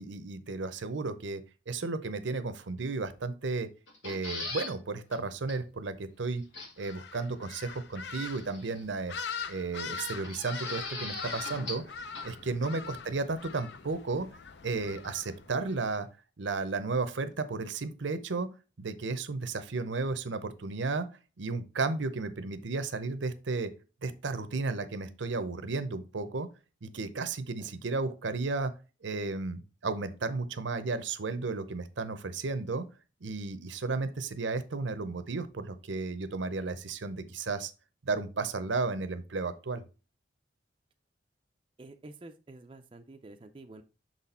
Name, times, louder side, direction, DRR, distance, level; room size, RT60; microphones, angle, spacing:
voice 1, 0.0-3.7 4.0-6.4 6.8-9.1 9.5-11.8 12.2-14.3 14.6-16.1 16.4-18.5 18.8-21.1 21.4-23.7 24.0-26.5 26.8-28.7 29.0-32.8 33.2-37.7 38.1-39.8, right 3 dB, 75° right, 0.7 m, -33 dB
sound 1, 3.9-4.7 5.1-5.2 5.5-5.6 6.5-6.9 8.2-8.8 10.2-11.9 12.1-12.2, left 3 dB, 85° left, 2.1 m, -39 dB
sound 2, 6.8-15.9, left 6 dB, 60° left, 0.5 m, -42 dB
voice 2, 41.8-43.8, right 2 dB, 25° right, 0.4 m, -49 dB
6.1 x 4.1 x 4.2 m
head